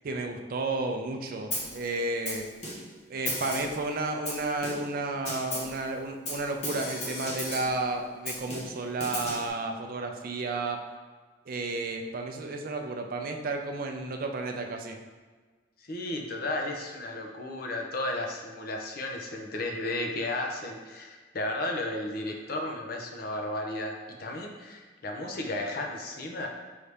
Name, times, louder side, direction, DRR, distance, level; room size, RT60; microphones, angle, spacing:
voice 1, 0.0-2.5 3.1-10.8 11.5-15.0, right 2 dB, 55° right, 4 dB, 0.4 m, -32 dB
Snare drum, 1.5-1.8 2.3-3.0 3.3-3.8 4.3-5.0 5.3-5.8 6.3-7.8 8.3-9.5, left 1 dB, 40° left, 1.1 m, -35 dB
voice 2, 15.8-26.5, left 2 dB, 55° left, 1 dB, 0.6 m, -34 dB
4.7 x 2.7 x 3.3 m, 1.4 s
head